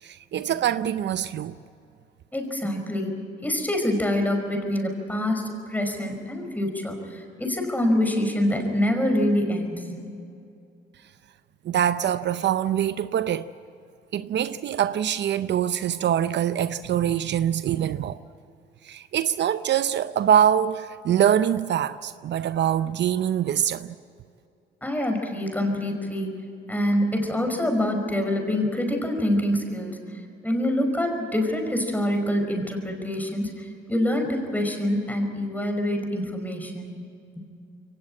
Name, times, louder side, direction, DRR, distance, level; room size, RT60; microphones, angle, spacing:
voice 1, 0.0-1.6 11.6-13.5 14.1-18.2 18.8-24.0, right 10 dB, 60° right, 0.6 m, -24 dB
voice 2, 2.3-3.1 3.4-10.0 24.8-26.3 26.7-30.0 30.4-36.9 37.4-37.5, left 1 dB, 10° left, 5.3 m, -26 dB
23.0 x 18.5 x 8.8 m
cardioid pair, 90°, 20 cm